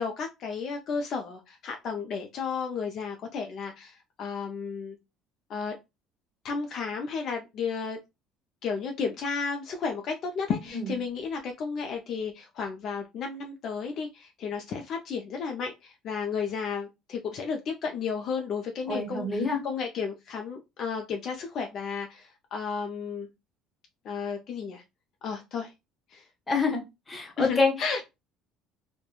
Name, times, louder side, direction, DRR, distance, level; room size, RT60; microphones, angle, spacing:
voice 1, 0.0-5.0 5.5-5.7 6.4-8.0 8.6-23.3 24.0-24.8 25.2-25.7 26.1-26.3 27.4-28.0, left 5 dB, 55° left, 3 dB, 0.4 m, -33 dB
voice 2, 18.9-19.6 26.5-26.8 27.1-27.7, left 3 dB, 20° left, 3 dB, 0.9 m, -26 dB
2.9 x 2.1 x 2.3 m, 0.23 s
cardioid pair, 120°, 0 cm